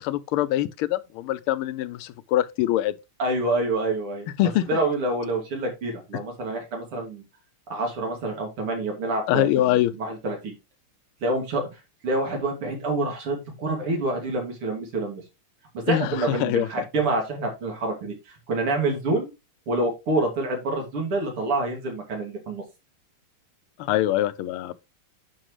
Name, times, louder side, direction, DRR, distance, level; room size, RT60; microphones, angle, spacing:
voice 1, 0.0-3.0 4.4-4.8 6.1-6.2 9.3-9.9 15.9-16.8 23.8-24.8, left 13 dB, 80° left, 1.5 m, -24 dB
voice 2, 3.2-4.3 4.7-7.2 7.7-10.5 11.2-11.6 12.0-15.2 15.9-18.1 18.5-19.3 19.7-22.6, right 2 dB, 85° right, 3.4 m, -27 dB
10.0 x 4.5 x 3.2 m
omnidirectional pair, 2.4 m